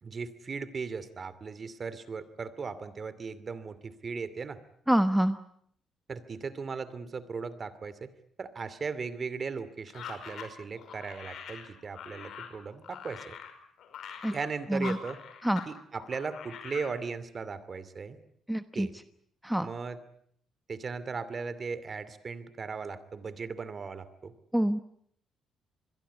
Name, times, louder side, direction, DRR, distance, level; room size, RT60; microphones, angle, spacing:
voice 1, 0.0-4.6 6.1-8.1 8.4-13.4 14.3-15.2 15.7-18.2 18.7-18.9 19.6-20.0 20.7-24.3, right 5 dB, 40° right, 15 dB, 2.5 m, -37 dB
voice 2, 4.9-5.4 14.2-14.3 14.7-15.0 15.4-15.6 18.5-18.9 19.4-19.7 24.5-24.8, right 1 dB, 5° right, 10 dB, 1.0 m, -26 dB
sound 1, 9.9-15.7 16.0-16.9, left 8 dB, 70° left, 5.4 m, -44 dB
26.5 x 21.5 x 8.3 m, 0.67 s
cardioid pair, 90°, 0 cm